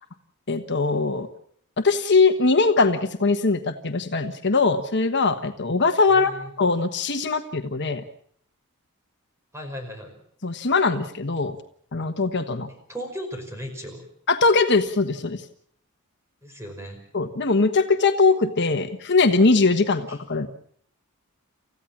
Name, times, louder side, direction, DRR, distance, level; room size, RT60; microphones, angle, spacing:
voice 1, 0.5-1.3 1.8-8.0 10.4-11.6 11.9-12.7 14.3-15.4 17.1-20.5, left 3 dB, 55° left, 7 dB, 1.3 m, -21 dB
voice 2, 6.1-6.5 9.5-10.2 12.7-14.1 16.4-17.0 20.1-20.2, equal, 15° right, 4 dB, 5.6 m, -36 dB
29.0 x 15.5 x 7.3 m, 0.64 s
head